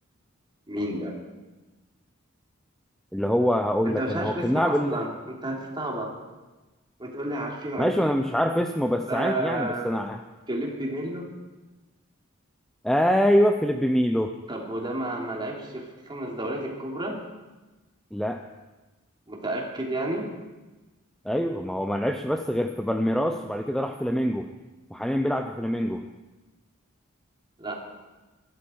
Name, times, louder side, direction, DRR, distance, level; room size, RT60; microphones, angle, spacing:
voice 1, 0.7-1.2 3.8-6.1 7.0-7.9 9.1-9.9 10.5-11.3 14.5-17.1 19.3-20.2 27.6-27.7, right 1 dB, 25° right, -1 dB, 3.1 m, -31 dB
voice 2, 3.1-5.0 7.8-10.2 12.8-14.3 18.1-18.4 21.2-24.5 24.9-26.1, equal, ahead, 5 dB, 0.6 m, -24 dB
21.5 x 13.0 x 4.6 m, 1.2 s
head